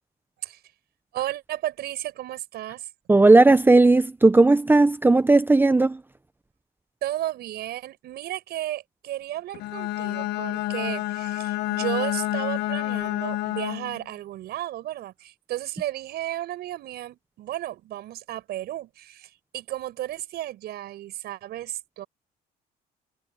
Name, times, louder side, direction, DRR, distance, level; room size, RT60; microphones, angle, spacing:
voice 1, 1.1-2.9 7.0-22.1, right 14 dB, 70° right, 7.3 m, -33 dB
voice 2, 3.1-6.0, right 2 dB, 10° right, 0.8 m, -16 dB
Bowed string instrument, 9.5-14.0, left 15 dB, 85° left, 1.3 m, -29 dB
cardioid pair, 110°, 17 cm